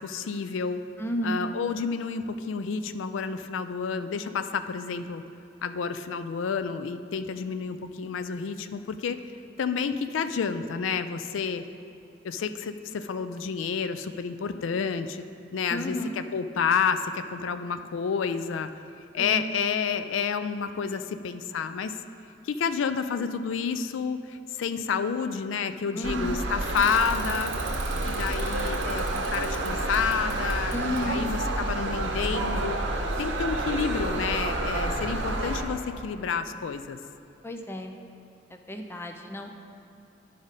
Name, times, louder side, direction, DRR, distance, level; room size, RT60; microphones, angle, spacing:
voice 1, 0.0-0.8 1.2-5.2 5.6-9.2 9.6-11.6 12.2-15.3 15.5-18.7 19.1-22.0 22.4-27.5 28.0-32.8 33.2-37.0, left 6 dB, 85° left, 10 dB, 0.4 m, -30 dB
voice 2, 1.0-1.5 15.7-16.2 19.2-19.6 25.9-26.5 30.7-31.3 37.4-37.9 38.5-39.5, equal, 15° left, 4 dB, 0.4 m, -32 dB
sound 1, 26.0-35.6, right 2 dB, 70° right, 0.8 m, -29 dB
Bicycle / Mechanisms, 26.6-32.0, right 4 dB, 40° right, 1.3 m, -43 dB
11.5 x 5.0 x 4.0 m, 2.5 s
head